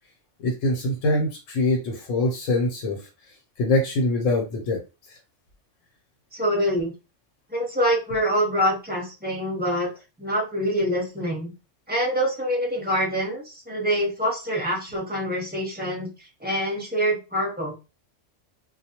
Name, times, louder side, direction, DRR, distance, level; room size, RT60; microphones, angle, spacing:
voice 1, 0.4-3.0 3.6-4.8 5.1-5.2, left 2 dB, 85° left, 1 dB, 1.1 m, -24 dB
voice 2, 6.3-6.9 7.5-9.9 10.2-11.5 11.9-16.1 16.4-17.7, equal, 10° right, -3 dB, 0.8 m, -25 dB
2.3 x 2.2 x 2.8 m, 0.29 s
omnidirectional pair, 1.3 m